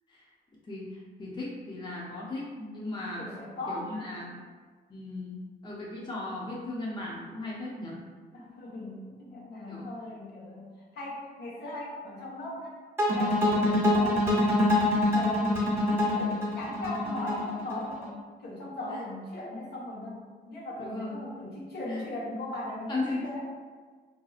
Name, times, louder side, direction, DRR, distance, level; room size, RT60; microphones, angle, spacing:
voice 1, 0.7-3.2 3.7-4.3 4.9-8.0 9.7-9.9 20.8-21.2 21.9-22.0 22.9-23.2, left 2 dB, 25° left, -5 dB, 0.7 m, -36 dB
voice 2, 3.2-3.9 4.2-4.4 8.3-12.7 13.1-14.5 14.9-18.1 18.4-20.2 20.5-23.4, left 1 dB, 65° left, -6 dB, 1.1 m, -39 dB
sound 1, 13.0-18.1, left 1 dB, 10° right, 0.8 m, -25 dB
4.0 x 2.7 x 2.4 m, 1.5 s
cardioid pair, 95°, 18 cm